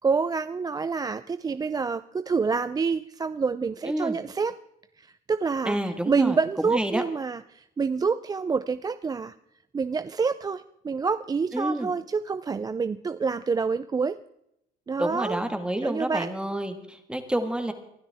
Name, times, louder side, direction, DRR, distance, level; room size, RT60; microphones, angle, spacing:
voice 1, 0.0-4.5 5.0-5.8 6.1-9.3 9.7-14.2 14.9-15.4 15.8-16.3, right 5 dB, 20° right, 12 dB, 0.4 m, -27 dB
voice 2, 3.8-4.2 5.6-7.0 11.5-11.9 15.0-17.7, right 1 dB, 5° right, 7 dB, 1.6 m, -29 dB
23.0 x 12.0 x 3.5 m, 0.80 s
cardioid pair, 110°, 17 cm